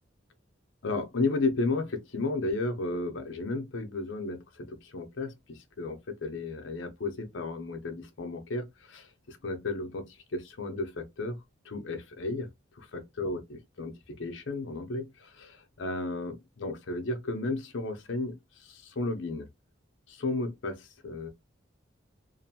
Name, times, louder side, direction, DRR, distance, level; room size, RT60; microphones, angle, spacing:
voice 1, 0.8-11.4 11.6-12.5 12.8-19.5 20.1-21.3, left 3 dB, 70° left, 0.6 m, -34 dB
2.7 x 2.1 x 2.7 m
head